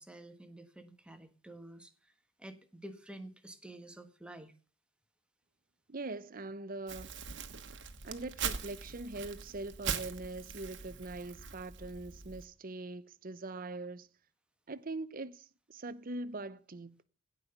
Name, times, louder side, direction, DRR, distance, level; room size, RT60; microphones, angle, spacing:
voice 1, 0.0-2.1 2.4-4.5, right 1 dB, 5° right, 1.3 m, -50 dB
voice 2, 5.9-7.2 8.0-14.1 14.7-17.0, right 2 dB, 45° right, 0.7 m, -42 dB
Crumpling crinkling, 6.9-12.5, right 6 dB, 60° right, 1.3 m, -41 dB
16.5 x 5.6 x 6.9 m
head